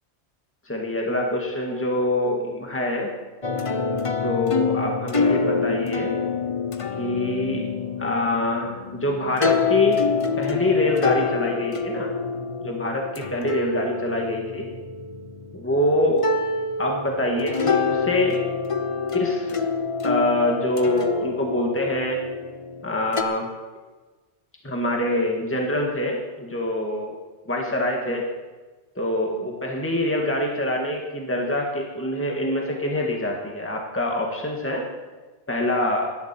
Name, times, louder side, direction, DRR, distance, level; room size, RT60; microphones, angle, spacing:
voice 1, 0.7-3.1 4.2-6.1 7.0-7.7 8.0-10.1 10.4-12.2 12.6-14.7 15.5-16.3 16.8-18.4 19.1-19.7 20.0-22.2 22.8-23.5 24.6-27.2 27.5-28.3 29.0-34.9 35.5-36.1, left 1 dB, 10° left, 0 dB, 1.9 m, -25 dB
sound 1, 3.4-15.7 16.2-23.2, left 4 dB, 35° left, 0.8 m, -27 dB
18.0 x 12.5 x 4.5 m, 1.3 s
omnidirectional pair, 1.1 m